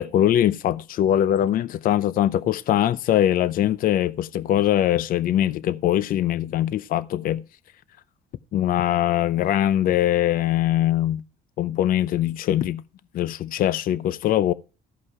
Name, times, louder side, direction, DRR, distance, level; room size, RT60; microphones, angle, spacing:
voice 1, 0.0-7.4 8.5-11.2 11.6-12.8 13.1-14.5, left 12 dB, 55° left, 0.5 m, -22 dB
13.5 x 5.5 x 4.6 m
cardioid pair, 110°, 17 cm